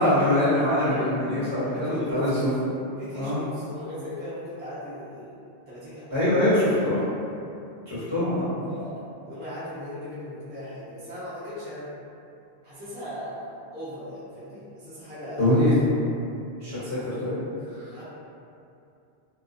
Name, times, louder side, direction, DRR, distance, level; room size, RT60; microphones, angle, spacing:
voice 1, 0.0-2.5 3.1-3.4 6.1-7.0 7.9-8.5 15.4-15.9 16.6-17.4 17.7-17.9, left 1 dB, 40° right, -14 dB, 1.2 m, -23 dB
voice 2, 0.8-1.5 1.7-2.2 3.0-5.4 5.7-6.3 8.7-12.0 12.6-15.5 17.9-18.0, left 1 dB, 15° right, -13 dB, 0.4 m, -39 dB
2.3 x 2.3 x 2.5 m, 2.6 s
omnidirectional pair, 1.1 m